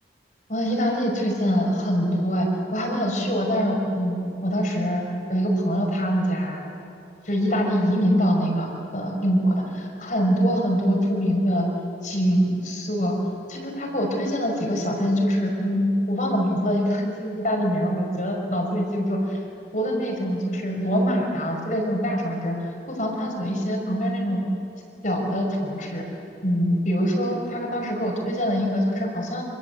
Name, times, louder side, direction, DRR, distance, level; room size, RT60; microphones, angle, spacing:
voice 1, 0.5-5.0 5.3-6.7 7.2-11.6 12.0-13.1 13.5-19.4 19.7-22.5 22.9-24.4 25.0-26.0 26.4-29.4, equal, 45° left, 1 dB, 5.9 m, -24 dB
27.5 x 26.0 x 8.3 m, 2.9 s
head